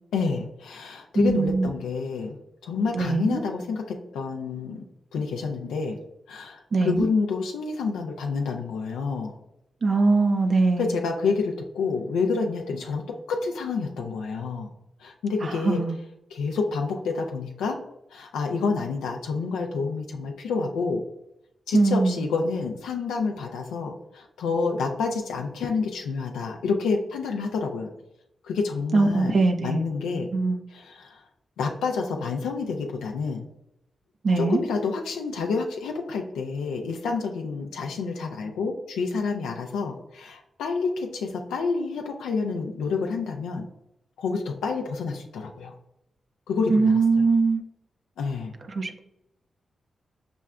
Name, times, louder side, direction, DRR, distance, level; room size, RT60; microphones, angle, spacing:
voice 1, 0.1-2.3 2.6-4.8 5.1-6.0 6.3-9.3 10.8-14.7 15.0-15.8 16.3-17.8 18.1-21.0 21.7-27.9 28.4-30.3 30.7-31.2 31.6-33.4 34.4-43.7 44.2-45.8 46.5-47.2 48.2-48.5, left 4 dB, 90° left, 2 dB, 0.3 m, -28 dB
voice 2, 1.1-1.7 2.9-3.4 6.7-7.1 9.8-10.9 15.4-16.0 21.7-22.3 28.9-29.8 30.3-30.6 34.2-34.6 46.7-47.6 48.7-49.0, right 3 dB, 60° right, 6 dB, 0.4 m, -22 dB
5.8 x 2.2 x 2.3 m, 0.84 s
supercardioid pair, 40°, 0 cm